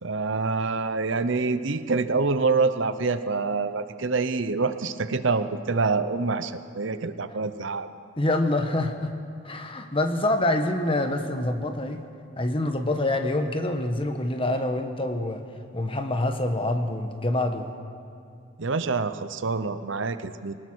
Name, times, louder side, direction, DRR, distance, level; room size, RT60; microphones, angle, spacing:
voice 1, 0.0-7.9 18.6-20.6, right 4 dB, 60° right, 11 dB, 0.8 m, -26 dB
voice 2, 8.2-9.1 9.4-12.0 12.4-15.4 15.7-17.7, left 1 dB, 25° left, 6 dB, 1.2 m, -26 dB
22.0 x 19.5 x 6.3 m, 2.5 s
head